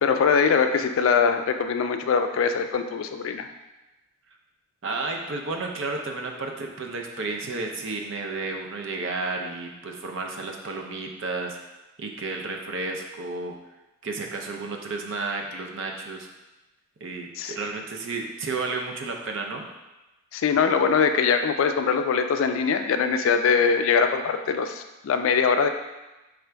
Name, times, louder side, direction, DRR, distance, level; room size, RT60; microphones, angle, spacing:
voice 1, 0.0-3.5 17.4-17.5 20.3-25.7, left 6 dB, 70° left, 7 dB, 0.3 m, -22 dB
voice 2, 4.8-11.6 12.0-13.6 14.0-16.3 17.0-19.7, right 3 dB, 60° right, 2 dB, 0.5 m, -32 dB
3.3 x 2.5 x 4.4 m, 1.0 s
head